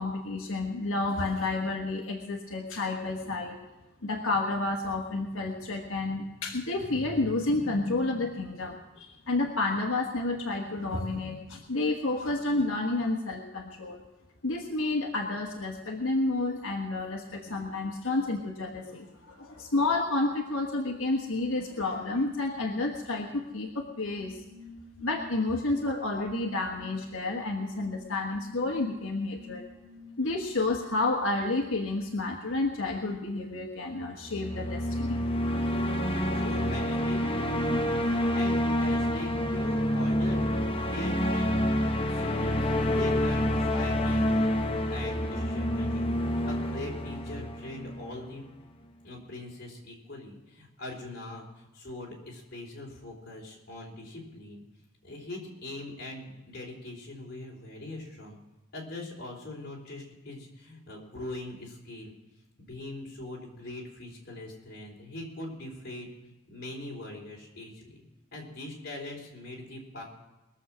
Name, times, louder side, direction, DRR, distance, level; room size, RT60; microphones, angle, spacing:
voice 1, 0.0-3.6 4.0-14.0 14.4-24.4 25.0-29.6 30.2-35.2, left 2 dB, 85° left, 0 dB, 1.4 m, -30 dB
sound 1, 23.9-30.5, left 3 dB, 40° right, 2.6 m, -50 dB
sound 2, 34.2-48.4, equal, 25° left, 0.9 m, -28 dB
voice 2, 35.8-40.4 40.7-46.1 46.4-48.4 49.0-54.6 55.0-58.4 58.7-62.1 62.6-68.0 68.3-70.0, left 2 dB, 50° left, -2 dB, 4.0 m, -42 dB
21.5 x 7.3 x 6.2 m, 1.1 s
head